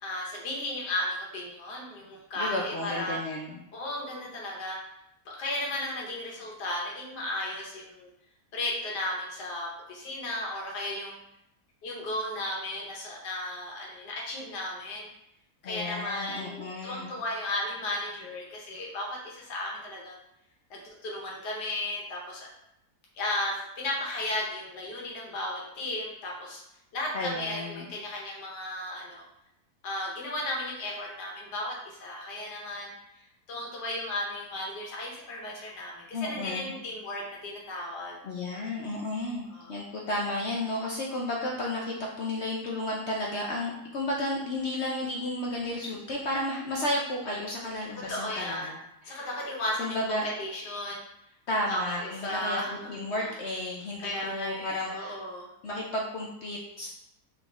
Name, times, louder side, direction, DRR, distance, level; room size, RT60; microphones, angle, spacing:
voice 1, 0.0-3.2 3.7-4.8 5.2-8.1 8.5-11.2 11.8-15.1 15.6-20.2 20.7-22.5 23.1-26.6 26.9-29.2 29.8-32.9 33.5-38.2 39.5-39.7 48.1-48.7 49.0-51.0 51.5-52.9 53.2-53.3 54.0-55.5, left 1 dB, 85° left, -3 dB, 1.6 m, -35 dB
voice 2, 2.4-3.6 15.6-17.1 27.1-27.9 36.1-36.7 38.2-49.2 49.8-50.3 51.5-52.6 52.9-55.2 55.6-56.9, left 1 dB, 60° left, -2 dB, 0.7 m, -33 dB
4.1 x 3.6 x 3.4 m, 0.81 s
omnidirectional pair, 1.7 m